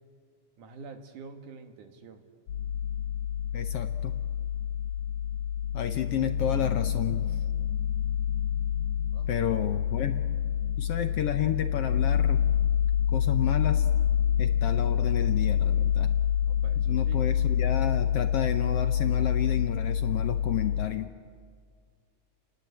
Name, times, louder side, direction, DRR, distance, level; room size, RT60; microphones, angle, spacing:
voice 1, 0.6-2.2 9.1-9.4 16.5-17.2, right 5 dB, 85° right, 5 dB, 3.3 m, -47 dB
sound 1, 2.5-20.9, left 9 dB, 90° left, 2.7 m, -27 dB
voice 2, 3.5-4.2 5.7-7.3 9.3-10.2 10.8-12.4 13.1-13.9 14.4-16.1 16.9-21.1, left 10 dB, 70° left, 8 dB, 1.5 m, -31 dB
30.0 x 19.5 x 8.4 m, 2.1 s
omnidirectional pair, 3.5 m